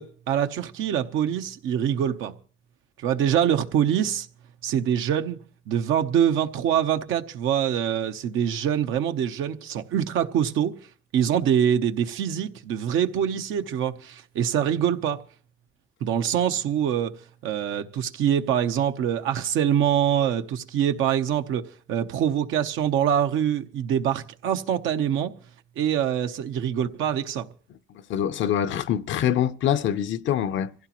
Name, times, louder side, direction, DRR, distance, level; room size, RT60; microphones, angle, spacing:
voice 1, 0.0-2.3 3.0-4.3 4.6-5.4 5.7-10.7 11.1-15.2 16.0-25.3 25.8-27.5, right 9 dB, 90° right, 0.9 m, -24 dB
voice 2, 27.9-30.7, left 10 dB, 75° left, 0.7 m, -25 dB
25.0 x 15.5 x 3.0 m
cardioid pair, 90°, 20 cm